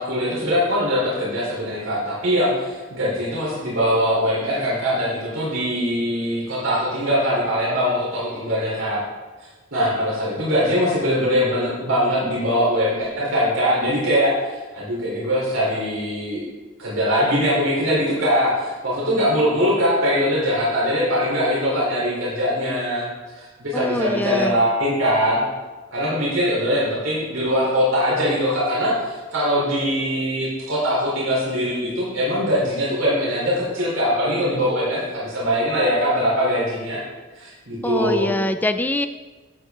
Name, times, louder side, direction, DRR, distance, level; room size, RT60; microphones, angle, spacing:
voice 1, 0.0-9.0 9.7-16.4 16.8-23.0 23.3-25.4 25.9-37.0 37.3-38.3, equal, 80° right, -6 dB, 3.7 m, -22 dB
voice 2, 23.7-24.6 37.8-39.1, left 1 dB, 10° left, 10 dB, 0.4 m, -24 dB
12.0 x 8.1 x 3.7 m, 1.3 s
head